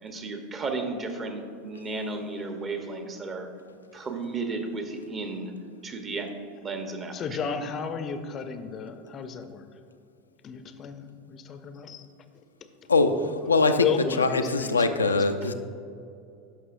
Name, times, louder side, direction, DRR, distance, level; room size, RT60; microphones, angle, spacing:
voice 1, 0.0-3.5 3.9-5.5 5.8-7.4 15.4-15.5, right 3 dB, 30° right, 5 dB, 0.9 m, -34 dB
voice 2, 7.1-9.7 10.4-12.0 13.7-15.0, left 6 dB, 35° left, 9 dB, 0.5 m, -33 dB
voice 3, 13.5-13.9 14.2-15.5, left 3 dB, 85° left, 7 dB, 0.3 m, -22 dB
11.5 x 5.6 x 2.5 m, 2.4 s
figure-of-eight pair, 80°, 0 cm